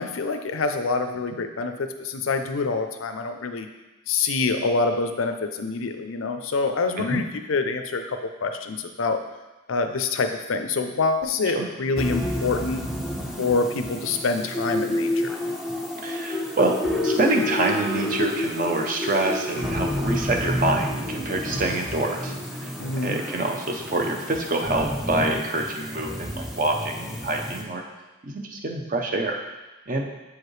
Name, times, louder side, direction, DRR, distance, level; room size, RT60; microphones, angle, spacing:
voice 1, 0.0-3.7 4.1-9.2 9.7-12.8 13.4-15.3 22.8-23.2, left 4 dB, 90° left, 7 dB, 0.5 m, -26 dB
sound 1, 12.0-27.6, left 1 dB, ahead, 0.4 m, -29 dB
voice 2, 16.0-16.8 17.0-22.3 22.6-22.7 23.0-27.8 28.2-29.4 29.9-30.0, right 2 dB, 40° right, 2 dB, 0.7 m, -26 dB
7.4 x 4.8 x 3.2 m, 1.1 s
head